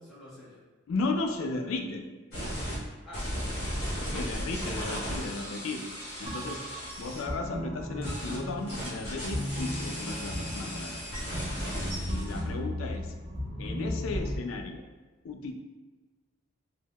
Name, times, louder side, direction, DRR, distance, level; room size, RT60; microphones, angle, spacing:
voice 1, 0.0-0.6 3.0-4.5 12.4-12.6, left 2 dB, ahead, -12 dB, 1.0 m, -47 dB
voice 2, 0.9-2.0 4.1-5.8 6.2-6.6 7.0-11.0 12.1-13.1 13.6-14.8 15.2-15.5, left 3 dB, 75° left, 5 dB, 0.4 m, -35 dB
sound 1, 2.3-2.8 3.1-7.2 8.0-12.4, equal, 50° left, 1.4 m, -36 dB
sound 2, 6.3-14.4, left 1 dB, 20° right, 0.6 m, -36 dB
4.5 x 2.0 x 2.2 m, 1.3 s
head